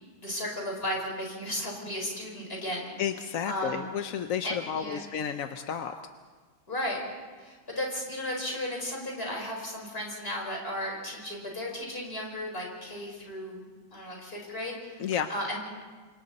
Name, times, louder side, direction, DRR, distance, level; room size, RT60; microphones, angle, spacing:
voice 1, 0.2-2.9 3.4-3.9 4.4-5.1 6.7-7.0 7.4-15.6, left 1 dB, 30° left, -1 dB, 5.1 m, -35 dB
voice 2, 3.0-5.9 15.0-15.3, left 8 dB, 60° left, 7 dB, 1.0 m, -31 dB
28.0 x 26.0 x 4.2 m, 1.4 s
omnidirectional pair, 2.1 m